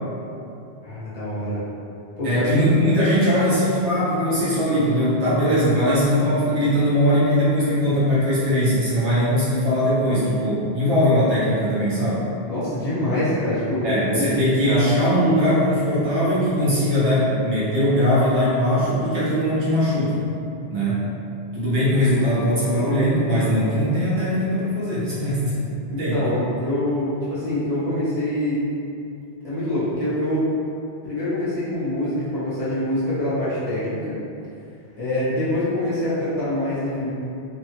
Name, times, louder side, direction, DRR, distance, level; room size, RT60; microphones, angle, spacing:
voice 1, 0.8-1.6 2.2-2.5 12.4-13.9 14.2-14.3 25.9-28.6 29.4-30.5 31.0-34.2 35.0-37.1, left 1 dB, 40° left, -12 dB, 0.7 m, -25 dB
voice 2, 2.2-12.2 13.8-20.2 20.7-21.1 21.5-25.5 26.0-26.2, equal, 80° right, -9 dB, 1.1 m, -20 dB
3.0 x 2.1 x 2.9 m, 2.6 s
omnidirectional pair, 1.1 m